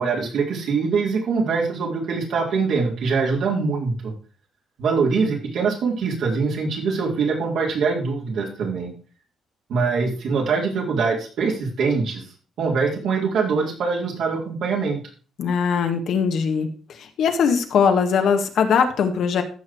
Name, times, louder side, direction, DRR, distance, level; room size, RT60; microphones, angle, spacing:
voice 1, 0.0-4.1 4.8-8.9 9.7-12.2 12.6-15.0, right 4 dB, 75° right, -1 dB, 4.2 m, -23 dB
voice 2, 15.4-16.7 17.0-19.4, left 6 dB, 70° left, 6 dB, 1.8 m, -20 dB
14.5 x 6.1 x 4.7 m, 0.38 s
cardioid pair, 90°, 0 cm